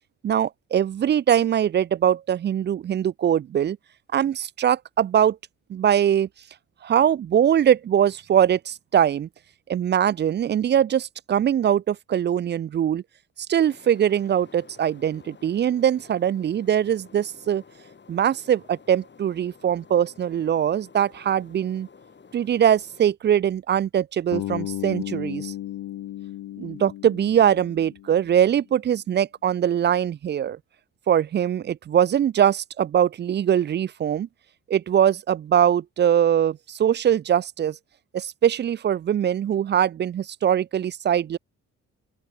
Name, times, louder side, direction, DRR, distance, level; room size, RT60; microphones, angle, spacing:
voice 1, 0.2-3.8 4.1-5.4 5.7-6.3 6.8-9.3 9.7-13.0 13.5-17.6 18.1-21.9 22.3-25.5 26.6-30.6 31.1-34.3 34.7-37.8 38.1-41.4, right 9 dB, 35° right, 0.4 m, -22 dB
sound 1, 13.6-23.1, left 5 dB, 35° left, 6.7 m, -51 dB
Bass guitar, 24.3-28.4, left 14 dB, 80° left, 2.1 m, -34 dB
open air
cardioid pair, 90°, 30 cm